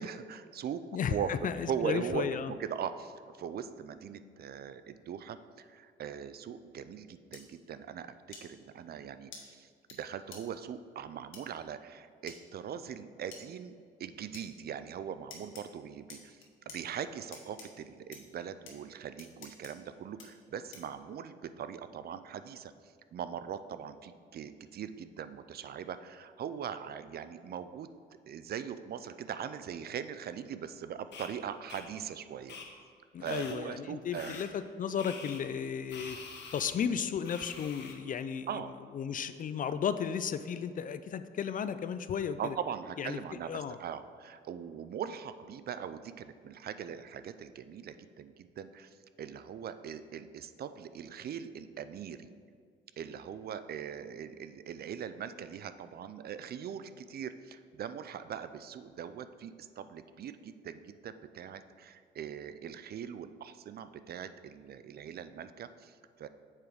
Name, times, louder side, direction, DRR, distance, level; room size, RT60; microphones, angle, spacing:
voice 1, 0.0-1.3 1.7-8.1 8.4-13.7 14.0-27.9 28.3-32.6 33.2-34.4 38.5-38.7 42.4-52.3 53.0-66.3, right 8 dB, 50° right, 12 dB, 0.4 m, -41 dB
voice 2, 0.9-2.5 33.1-36.2 36.5-38.5 38.9-42.5 43.0-43.2 43.5-43.8, left 7 dB, 45° left, 12 dB, 0.4 m, -34 dB
sound 1, 7.3-7.4 8.3-8.4 9.3-9.4 9.9-10.0 10.3-10.4 11.3-11.4 12.3-12.4 13.3-13.4 14.3-14.5 15.3-15.6 16.1-16.8 17.3-17.7 18.1-18.2 18.7-18.8 19.2-19.7 20.2-20.3 20.7-20.9, left 5 dB, 85° left, 1.2 m, -48 dB
sound 2, 31.1-31.3 31.7-31.8 32.5-32.7 33.2-33.6 34.1-34.5 35.0-35.4 35.9-36.7 37.2-37.9, left 5 dB, 65° left, 1.1 m, -45 dB
7.4 x 4.6 x 4.9 m, 2.1 s
cardioid pair, 90°, 20 cm